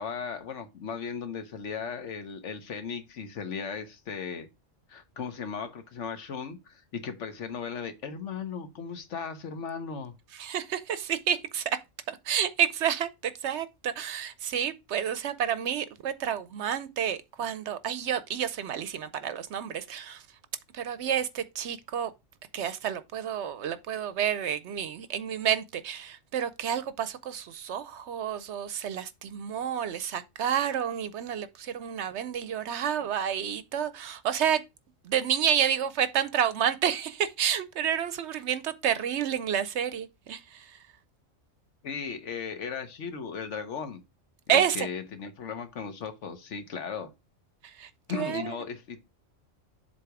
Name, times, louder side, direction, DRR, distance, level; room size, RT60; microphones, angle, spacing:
voice 1, 0.0-4.5 4.9-10.1 41.8-44.0 44.5-47.1 48.1-49.0, left 6 dB, 65° left, 1.2 m, -36 dB
voice 2, 10.3-11.8 12.1-20.3 20.7-22.1 22.5-34.6 35.0-40.8 44.5-44.9 47.6-48.5, right 9 dB, 65° right, 0.8 m, -30 dB
7.6 x 2.9 x 4.7 m
omnidirectional pair, 1.3 m